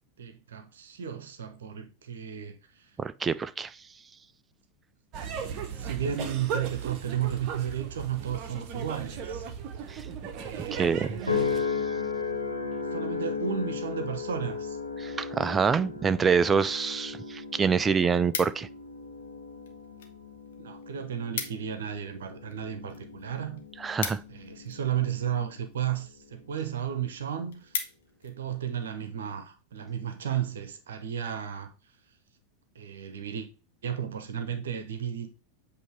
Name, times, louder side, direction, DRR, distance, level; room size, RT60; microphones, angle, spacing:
voice 1, 0.2-2.9 5.8-9.5 10.4-11.5 12.9-14.8 20.6-23.6 24.3-27.7 28.2-31.7 32.7-33.5 33.8-35.3, right 9 dB, 60° right, 0.9 m, -33 dB
voice 2, 3.0-3.7 9.9-10.1 10.7-11.2 15.0-18.7 23.8-24.2, right 6 dB, 15° right, 0.4 m, -26 dB
sound 1, 5.1-11.6, right 7 dB, 35° right, 1.0 m, -37 dB
sound 2, 11.3-25.7 26.3-26.7, left 5 dB, 90° left, 0.9 m, -36 dB
sound 3, 17.1-17.2 17.6-18.9 19.6-20.2 20.5-20.6 20.8-20.9 21.1-21.8 22.1-25.0 25.7-26.0 26.5-26.6 27.0-27.1 27.3-28.3 28.8-29.0, left 6 dB, 55° left, 1.0 m, -38 dB
7.9 x 2.8 x 4.6 m
figure-of-eight pair, 90°, 0 cm